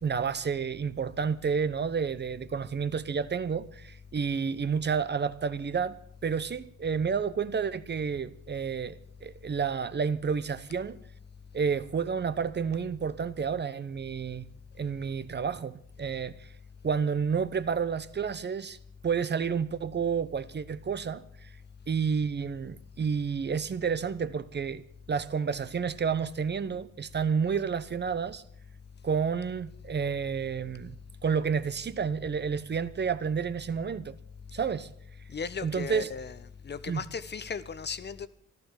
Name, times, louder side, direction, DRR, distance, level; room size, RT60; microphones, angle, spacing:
voice 1, 0.0-6.0 6.2-11.0 11.5-14.5 14.8-16.5 16.8-18.8 19.0-21.5 21.9-24.8 25.1-28.4 29.0-31.0 31.2-34.2 34.5-34.9 35.6-36.1 36.9-37.0, right 6 dB, 35° right, 0.9 m, -30 dB
voice 2, 35.3-36.4 36.6-38.3, left 6 dB, 35° left, 1.0 m, -36 dB
14.5 x 12.0 x 7.4 m
cardioid pair, 90°, 30 cm